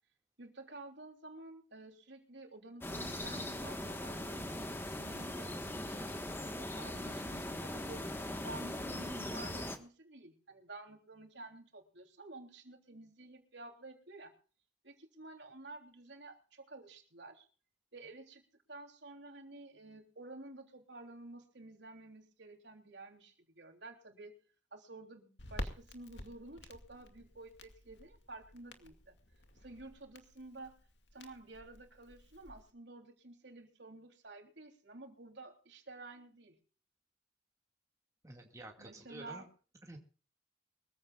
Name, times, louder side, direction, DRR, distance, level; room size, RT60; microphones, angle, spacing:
voice 1, 0.4-8.0 8.4-14.3 14.8-17.5 17.9-18.4 18.7-24.3 24.7-29.1 29.6-30.7 31.1-36.6 38.8-39.4, right 2 dB, 70° right, 4 dB, 3.4 m, -51 dB
sound 1, 2.8-9.8, left 1 dB, 10° left, 1.4 m, -40 dB
Crackle, 25.4-32.7, left 1 dB, 70° left, 2.4 m, -49 dB
voice 2, 38.2-39.5 39.8-40.0, right 2 dB, 15° right, 1 dB, 2.1 m, -50 dB
23.5 x 15.0 x 2.5 m, 0.39 s
head